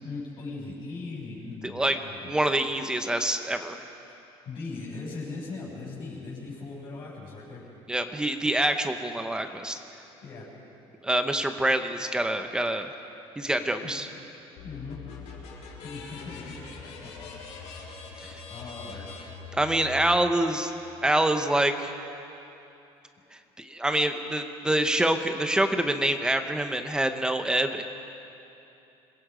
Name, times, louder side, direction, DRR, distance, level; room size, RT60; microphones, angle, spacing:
voice 1, 0.0-2.3 4.4-7.6 8.4-8.5 10.2-10.5 13.8-13.9 14.6-15.0 15.8-17.1 18.5-19.1, left 3 dB, 45° left, -6 dB, 6.7 m, -39 dB
voice 2, 1.6-2.0 2.2-3.8 7.9-9.8 11.0-12.9 13.4-14.1 18.2-18.4 19.5-20.7 21.0-21.9 23.6-27.8, right 1 dB, 5° right, 7 dB, 0.9 m, -26 dB
sound 1, 14.6-20.2, left 5 dB, 85° left, 4.8 m, -42 dB
27.5 x 22.0 x 5.1 m, 2.8 s
cardioid pair, 160°, 11 cm